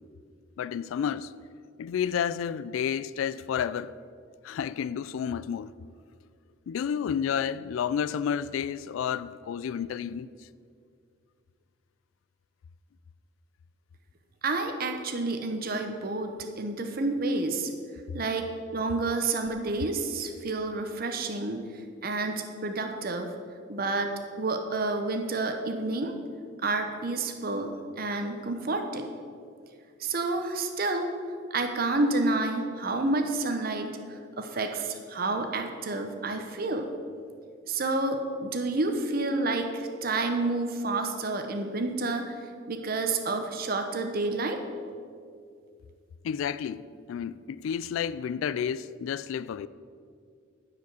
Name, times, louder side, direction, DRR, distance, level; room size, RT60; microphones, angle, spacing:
voice 1, 0.6-1.3 1.8-3.9 4.4-5.7 6.7-10.3 46.2-49.7, left 8 dB, 85° left, 0.3 m, -31 dB
voice 2, 14.4-17.7 18.1-21.6 22.0-23.3 23.7-24.1 24.4-26.1 26.6-29.1 30.0-31.1 31.5-33.9 34.4-36.9 37.7-42.3 42.7-44.6, right 2 dB, 45° right, 0.8 m, -29 dB
10.5 x 5.0 x 8.1 m
head